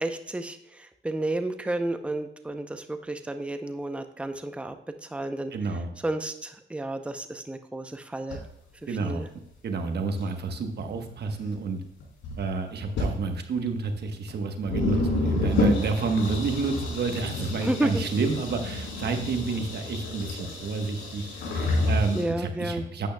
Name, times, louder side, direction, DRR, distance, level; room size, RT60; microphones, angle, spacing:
voice 1, 0.0-4.8 5.0-8.4 8.8-9.3 17.6-18.0 22.1-22.8, right 1 dB, 5° right, 7 dB, 0.7 m, -31 dB
voice 2, 5.5-5.9 8.9-9.2 9.6-11.8 12.4-23.1, right 4 dB, 55° right, 5 dB, 1.2 m, -29 dB
sound 1, 8.3-8.4 9.5-9.6 10.2-10.3 10.8-11.6 12.0-12.5 12.9-13.1 14.0-14.1 14.3-14.4 14.6-22.2, left 2 dB, 80° left, 3.8 m, -29 dB
11.5 x 9.0 x 2.3 m, 0.78 s
cardioid pair, 90°, 20 cm